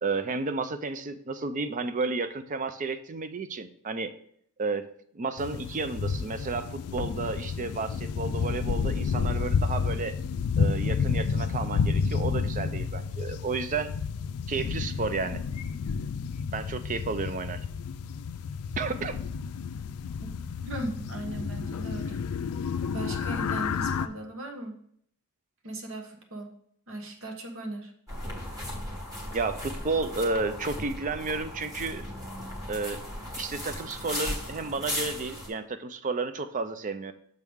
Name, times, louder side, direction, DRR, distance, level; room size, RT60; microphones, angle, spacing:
voice 1, 0.0-4.1 4.6-4.9 5.1-10.2 10.6-13.9 14.5-15.4 16.5-17.6 18.8-19.2 29.3-32.0 32.7-33.0 33.4-37.1, right 3 dB, 35° right, 11 dB, 0.4 m, -32 dB
sound 1, 5.4-24.1, left 5 dB, 75° left, 0.4 m, -30 dB
voice 2, 20.7-22.2 22.9-24.8 25.6-26.5 26.9-27.9, right 1 dB, 60° right, 3 dB, 1.2 m, -38 dB
sound 2, 28.1-35.5, left 1 dB, 15° right, 1.5 m, -36 dB
6.6 x 6.2 x 3.6 m, 0.66 s
head